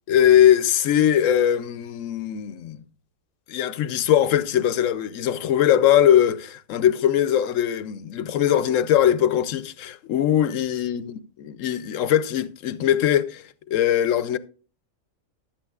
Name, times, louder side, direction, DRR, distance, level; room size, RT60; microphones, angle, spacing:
voice 1, 0.1-2.8 3.5-14.4, left 10 dB, 75° left, 1.0 m, -21 dB
14.5 x 11.5 x 2.4 m
omnidirectional pair, 1.4 m